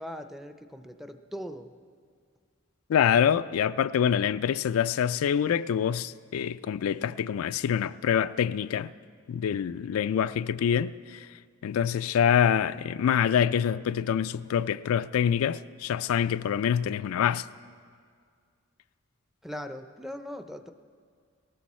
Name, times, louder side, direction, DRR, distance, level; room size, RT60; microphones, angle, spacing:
voice 1, 0.0-1.7 19.4-20.7, equal, ahead, 0.5 m, -40 dB
voice 2, 2.9-8.9 9.3-11.3 11.6-17.5, left 8 dB, 85° left, 0.3 m, -26 dB
19.0 x 13.5 x 4.2 m
head